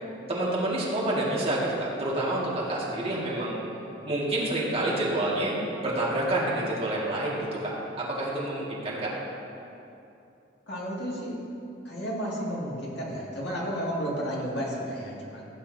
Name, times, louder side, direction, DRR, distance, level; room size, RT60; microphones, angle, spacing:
voice 1, 0.3-3.6 4.1-9.1, right 1 dB, 30° right, -6 dB, 2.0 m, -28 dB
voice 2, 10.7-11.4 11.8-15.4, equal, 60° left, -5 dB, 2.3 m, -32 dB
15.5 x 8.8 x 2.8 m, 2.8 s
head